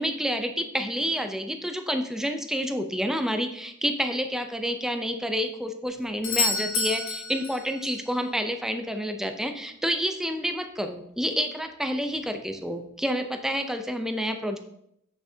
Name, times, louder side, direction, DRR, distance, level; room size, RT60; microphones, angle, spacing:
voice 1, 0.0-14.6, equal, ahead, 6 dB, 0.5 m, -29 dB
Doorbell, 6.2-8.1 12.2-12.3, left 4 dB, 75° left, 1.0 m, -29 dB
7.2 x 6.2 x 2.7 m, 0.75 s
head